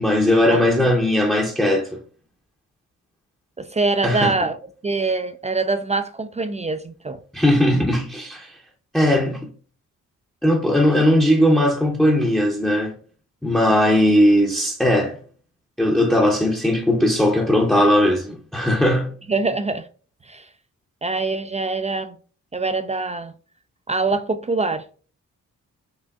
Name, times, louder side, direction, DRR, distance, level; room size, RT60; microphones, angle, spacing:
voice 1, 0.0-2.0 4.0-4.3 7.3-8.6 8.9-9.5 10.4-13.0 13.4-15.2 15.8-19.1, left 1 dB, ahead, 0.7 m, -18 dB
voice 2, 3.6-4.6 4.8-7.2 19.3-19.9 20.2-20.5 21.0-22.1 22.5-23.3 23.9-24.8, right 3 dB, 20° right, 0.3 m, -24 dB
4.7 x 2.6 x 2.2 m
supercardioid pair, 55°, 35 cm